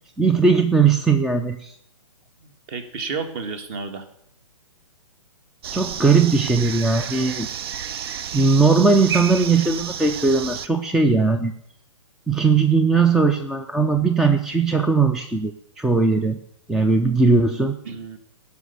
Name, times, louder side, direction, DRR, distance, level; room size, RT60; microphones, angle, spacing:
voice 1, 0.2-1.8 5.7-7.5 8.3-11.5 12.3-16.4 16.7-17.8, right 4 dB, ahead, 6 dB, 0.4 m, -19 dB
voice 2, 2.4-4.0 17.8-18.2, right 5 dB, 35° right, 10 dB, 1.5 m, -31 dB
sound 1, 5.6-10.7, right 8 dB, 50° right, 0.6 m, -31 dB
15.5 x 5.7 x 6.7 m, 0.70 s
figure-of-eight pair, 120°, 17 cm